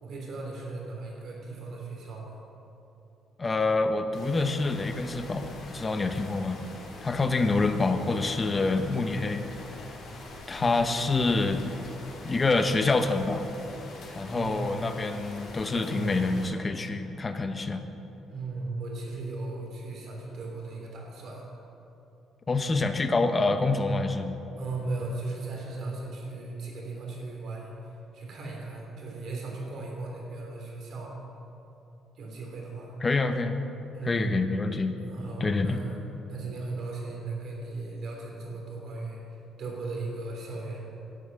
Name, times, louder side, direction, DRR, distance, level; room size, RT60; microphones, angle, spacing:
voice 1, 0.0-2.4 10.6-11.0 14.2-14.7 15.5-16.2 18.3-21.4 24.6-27.7 28.1-31.1 32.1-33.0 33.9-34.3 35.0-36.0 36.3-40.9, right 3 dB, 60° right, -1 dB, 3.2 m, -37 dB
voice 2, 3.4-6.6 7.0-9.5 10.5-11.6 12.2-13.5 14.1-17.8 22.5-24.4 33.0-33.6 34.1-35.0 35.4-35.8, left 3 dB, 25° left, 8 dB, 0.9 m, -26 dB
sound 1, 4.1-16.5, left 2 dB, 60° left, 2.9 m, -44 dB
11.5 x 8.4 x 6.8 m, 2.9 s
cardioid pair, 110°, 0 cm